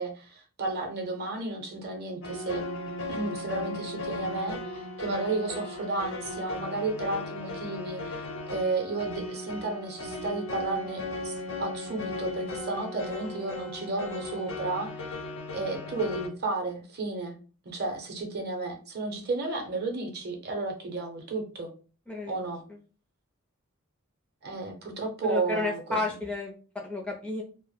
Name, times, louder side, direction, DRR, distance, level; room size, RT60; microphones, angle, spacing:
voice 1, 0.0-2.6 3.1-15.1 15.5-17.4 17.7-21.7 22.3-22.6 24.4-26.2, right 3 dB, 50° right, 2 dB, 0.6 m, -33 dB
sound 1, 2.2-16.3, left 2 dB, 65° left, 0.5 m, -37 dB
voice 2, 22.1-22.4 25.2-27.4, left 2 dB, 5° left, 0 dB, 0.4 m, -32 dB
2.0 x 2.0 x 3.1 m, 0.37 s
head